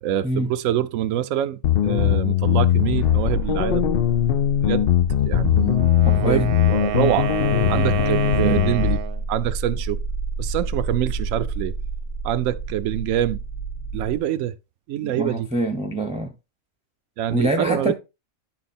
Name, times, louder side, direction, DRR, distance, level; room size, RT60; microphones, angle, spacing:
voice 1, 0.0-3.9 4.6-4.9 5.2-5.8 6.1-7.3 7.7-9.0 9.3-10.0 10.4-11.7 12.2-13.4 13.9-14.5 14.9-15.5 17.2-17.9, right 12 dB, 70° right, 1.0 m, -25 dB
sound 1, 1.6-9.0, left 11 dB, 60° left, 0.6 m, -20 dB
sound 2, 2.9-14.2, right 3 dB, 80° left, 2.3 m, -30 dB
Wind instrument woodwind instrument, 5.7-9.2, right 10 dB, 90° right, 1.2 m, -29 dB
voice 2, 6.0-6.5 8.2-8.6 15.0-16.3 17.3-17.9, right 1 dB, 5° right, 0.7 m, -25 dB
10.5 x 4.2 x 4.2 m
omnidirectional pair, 1.5 m